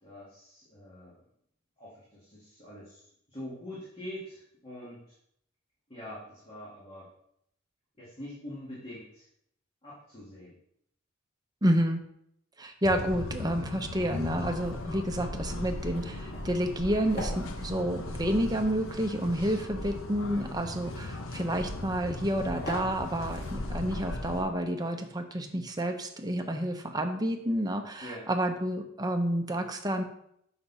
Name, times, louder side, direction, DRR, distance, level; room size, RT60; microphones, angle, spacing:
voice 1, 0.0-1.2 1.8-5.2 5.9-7.1 8.0-9.3 9.8-10.6 28.0-28.3, left 1 dB, 30° left, -8 dB, 2.3 m, -44 dB
voice 2, 11.6-12.0 12.6-30.0, equal, 20° right, 4 dB, 0.9 m, -30 dB
sound 1, 12.8-24.4, left 2 dB, 85° left, 0.9 m, -38 dB
sound 2, 14.4-24.0, equal, 50° left, 2.6 m, -46 dB
7.2 x 6.0 x 4.2 m, 0.73 s
head